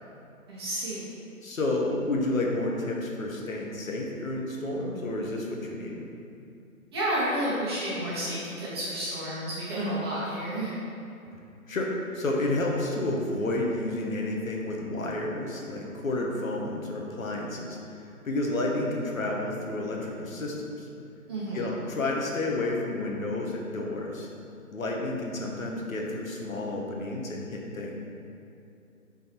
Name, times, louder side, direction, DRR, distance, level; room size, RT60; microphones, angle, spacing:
voice 1, 0.5-1.2 6.9-10.7 21.3-21.7, right 1 dB, 20° right, -9 dB, 1.1 m, -31 dB
voice 2, 1.4-6.1 11.7-11.9 12.1-20.9 21.5-24.3 24.7-27.9, left 2 dB, 65° left, -1 dB, 1.3 m, -30 dB
7.1 x 4.0 x 4.5 m, 2.6 s
hypercardioid pair, 160°, 43 cm